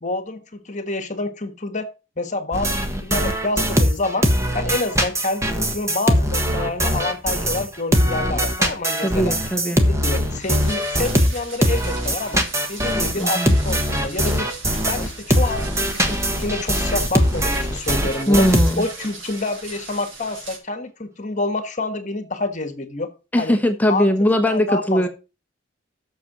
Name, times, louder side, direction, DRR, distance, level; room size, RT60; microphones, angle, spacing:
voice 1, 0.0-1.9 2.2-2.8 3.0-4.3 4.5-9.3 9.7-12.4 12.7-14.5 14.9-18.5 18.8-23.1 23.4-23.6 23.9-24.1 24.5-25.1, left 2 dB, 40° left, 1.5 m, -27 dB
sound 1, 2.5-7.7 7.9-19.1, equal, 15° right, 1.4 m, -21 dB
voice 2, 9.0-9.8 13.2-13.5 18.3-18.9 23.3-25.1, equal, 10° left, 1.2 m, -19 dB
sound 2, 10.4-20.6, right 3 dB, 75° right, 4.6 m, -39 dB
8.5 x 6.9 x 6.2 m
head